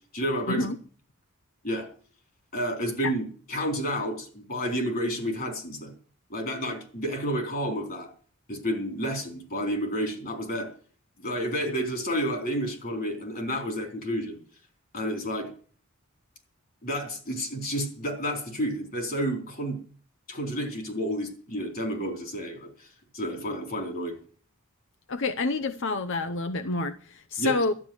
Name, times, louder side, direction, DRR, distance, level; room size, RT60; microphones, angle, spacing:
voice 1, 0.1-0.7 1.6-1.9 2.5-5.9 6.3-8.1 8.5-10.7 11.2-14.4 14.9-15.5 16.8-19.8 20.3-22.9 23.1-24.2 27.4-27.6, equal, 45° left, 4.0 m, -30 dB
voice 2, 25.1-27.7, left 3 dB, 65° left, 0.8 m, -28 dB
12.5 x 9.7 x 7.9 m
head